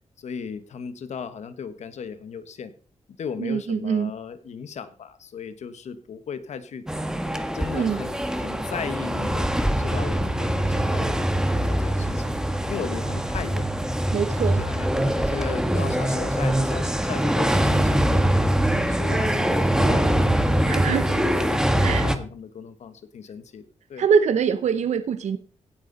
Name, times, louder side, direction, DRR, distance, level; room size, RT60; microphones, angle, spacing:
voice 1, 0.2-2.7 3.2-6.8 7.5-12.4 12.7-13.7 14.4-18.4 18.9-20.4 20.9-23.6 23.9-24.1, left 6 dB, 80° left, 11 dB, 1.4 m, -36 dB
voice 2, 3.4-4.1 7.7-8.0 14.1-14.6 20.7-21.0 21.8-22.1 24.0-25.4, right 7 dB, 80° right, 11 dB, 0.9 m, -23 dB
sound 1, 6.9-22.2, right 1 dB, 5° right, 1.5 m, -23 dB
16.5 x 10.0 x 4.1 m, 0.42 s
cardioid pair, 90°, 12 cm